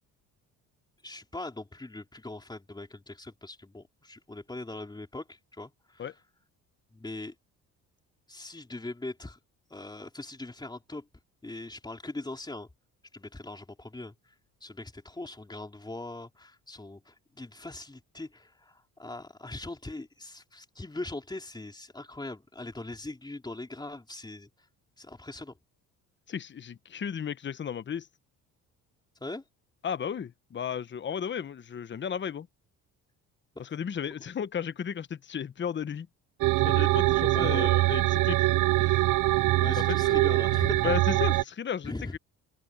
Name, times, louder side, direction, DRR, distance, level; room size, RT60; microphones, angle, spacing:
voice 1, 1.0-6.0 6.9-7.3 8.3-9.4 9.7-11.1 11.4-12.7 13.1-14.1 14.6-24.5 25.0-25.5 29.2-29.4 37.3-37.8 39.5-40.9 41.3-41.4 41.8-42.2, left 2 dB, 10° left, 3.8 m, -40 dB
voice 2, 26.3-28.1 29.8-32.5 33.6-36.1 36.6-38.5 38.8-39.0 39.6-40.4 40.8-42.2, left 7 dB, 35° left, 1.0 m, -34 dB
sound 1, 36.4-41.4, right 18 dB, 65° right, 0.6 m, -23 dB
open air
cardioid pair, 95°, 34 cm